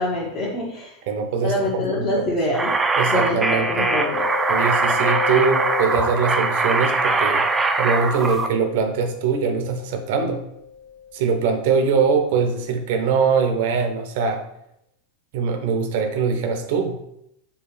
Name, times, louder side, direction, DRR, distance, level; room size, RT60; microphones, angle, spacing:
voice 1, 0.0-0.9 1.4-2.7 3.1-4.2, left 1 dB, 45° left, -6 dB, 1.0 m, -25 dB
voice 2, 1.1-2.6 3.0-3.9 4.5-7.4 7.8-10.4 11.1-14.4 15.3-17.0, right 5 dB, 65° right, 6 dB, 0.6 m, -22 dB
sound 1, 2.5-8.5, right 3 dB, 20° right, 0.3 m, -22 dB
Mallet percussion, 3.3-12.8, left 7 dB, 60° left, 0.4 m, -34 dB
4.6 x 2.3 x 3.2 m, 0.79 s
hypercardioid pair, 90°, 0 cm